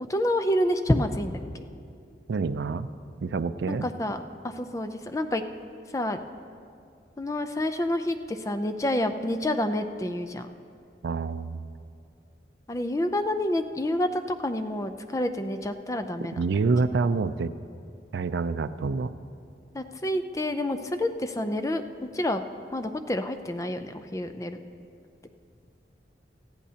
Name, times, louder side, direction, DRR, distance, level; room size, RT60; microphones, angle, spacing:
voice 1, 0.0-1.6 3.7-5.4 5.9-6.2 7.2-10.5 12.7-16.4 19.7-21.8 22.1-22.4 22.7-24.6, left 1 dB, 20° left, 8 dB, 0.4 m, -28 dB
voice 2, 2.3-2.9 3.2-3.9 11.0-11.7 16.4-17.5 18.1-19.1, right 4 dB, 80° right, 13 dB, 0.4 m, -27 dB
18.5 x 14.5 x 2.8 m, 2.4 s
head